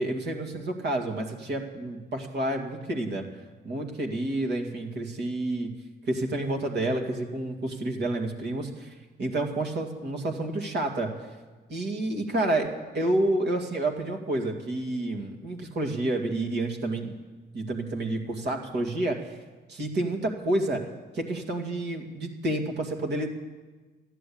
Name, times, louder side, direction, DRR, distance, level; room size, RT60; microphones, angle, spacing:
voice 1, 0.0-3.2 3.6-5.7 6.1-8.9 9.2-11.1 11.7-12.7 12.9-17.1 17.5-19.3 19.7-20.8 21.1-23.3, right 1 dB, 60° right, 3 dB, 2.3 m, -29 dB
13.5 x 10.5 x 8.6 m, 1.3 s
cardioid pair, 90°, 20 cm